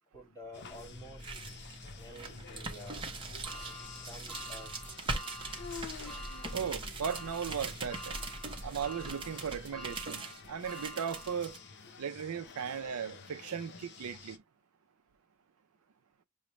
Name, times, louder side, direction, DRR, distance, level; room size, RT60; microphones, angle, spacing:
voice 1, 0.1-1.5 1.8-3.1 3.9-4.7, equal, 15° left, 2.0 m, -50 dB
sound 1, 0.5-14.4, left 5 dB, 50° left, 0.7 m, -50 dB
sound 2, 0.7-11.6, right 3 dB, 25° right, 0.9 m, -42 dB
sound 3, 3.4-11.8 12.3-12.4 13.6-13.7, equal, ahead, 1.0 m, -48 dB
voice 2, 6.5-8.2 8.6-11.6 12.0-14.4, right 7 dB, 85° right, 0.4 m, -37 dB
6.1 x 2.2 x 3.0 m
head